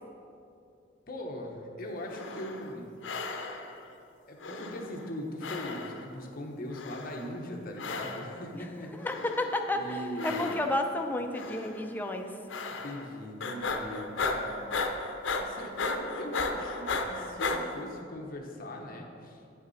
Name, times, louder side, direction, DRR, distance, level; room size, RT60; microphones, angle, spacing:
voice 1, 1.1-2.9 4.3-9.1 9.7-10.6 12.8-14.9 15.4-19.4, left 1 dB, 50° left, 1 dB, 0.9 m, -40 dB
sound 1, 2.0-2.7 3.0-3.8 4.4-5.2 5.4-6.2 6.7-7.4 7.8-8.4 9.0-9.7 10.2-10.9 11.3-11.8 12.5-13.1 13.4-17.6, left 3 dB, 75° left, 0.6 m, -35 dB
voice 2, 9.0-12.3, left 1 dB, 10° left, 4 dB, 0.5 m, -31 dB
9.2 x 6.0 x 4.0 m, 2.5 s
head